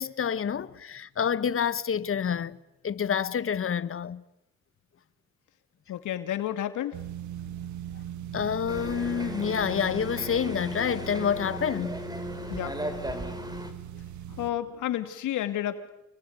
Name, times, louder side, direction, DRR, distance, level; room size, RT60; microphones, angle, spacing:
voice 1, 0.0-2.6 2.8-4.2 8.3-11.9, left 7 dB, 45° left, 1.4 m, -28 dB
voice 2, 5.9-7.0 12.5-12.8 14.3-16.0, left 12 dB, 80° left, 2.5 m, -31 dB
sound 1, 6.9-14.5, right 11 dB, 70° right, 1.6 m, -40 dB
sound 2, 8.7-13.7, equal, 15° right, 4.0 m, -37 dB
29.5 x 21.0 x 9.5 m
cardioid pair, 90°, 30 cm